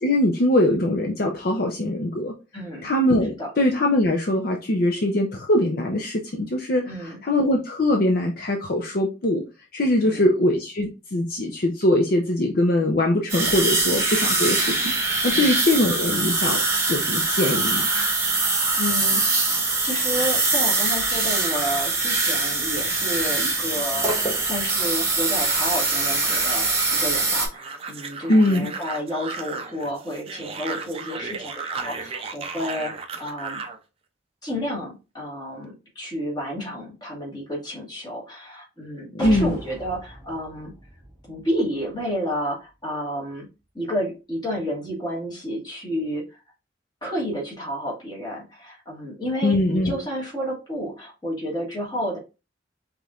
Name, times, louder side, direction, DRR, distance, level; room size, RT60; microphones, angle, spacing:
voice 1, 0.0-2.3 2.8-6.8 7.2-9.4 9.7-14.9 15.2-16.6 16.9-17.9 28.3-28.7 39.1-39.6 49.4-49.9, left 1 dB, 50° left, 1 dB, 0.6 m, -22 dB
voice 2, 2.5-2.9 3.4-3.5 6.8-7.2 10.0-10.2 15.3-15.6 18.3-18.5 18.7-24.1 24.4-33.6 34.4-40.7 41.3-43.5 43.7-46.4 47.0-52.2, equal, 20° left, -3 dB, 1.7 m, -31 dB
sound 1, 13.3-27.5, right 3 dB, 15° right, 1.1 m, -23 dB
sound 2, 25.4-33.8, right 4 dB, 30° right, 0.5 m, -35 dB
sound 3, 39.2-42.9 43.3-43.4, equal, 5° left, 2.5 m, -41 dB
5.1 x 3.0 x 2.4 m, 0.29 s
head